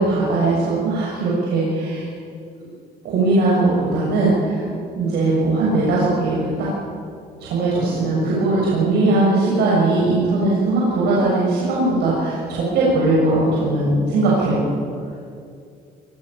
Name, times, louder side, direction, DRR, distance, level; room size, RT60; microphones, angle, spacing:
voice 1, 0.0-2.1 3.0-4.6 5.0-6.7 7.4-14.6, right 2 dB, 75° right, -6 dB, 7.0 m, -19 dB
25.0 x 21.5 x 7.1 m, 2.4 s
cardioid pair, 110°, 17 cm